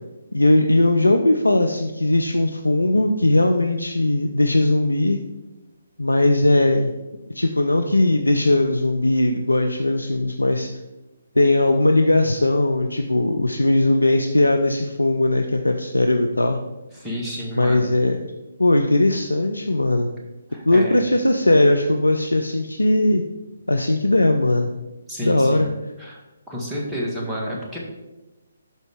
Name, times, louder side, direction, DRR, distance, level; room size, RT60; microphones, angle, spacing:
voice 1, 0.3-5.2 6.0-6.9 7.3-10.7 11.4-16.6 17.5-18.3 18.6-20.1 20.7-23.2 23.7-24.7 25.2-25.7, left 1 dB, 85° left, 5 dB, 0.5 m, -19 dB
voice 2, 16.9-17.8 20.5-21.0 25.1-25.6 26.0-26.2 26.5-27.8, equal, 10° right, -4 dB, 1.7 m, -30 dB
11.5 x 4.0 x 3.6 m, 1.1 s
figure-of-eight pair, 140°, 0 cm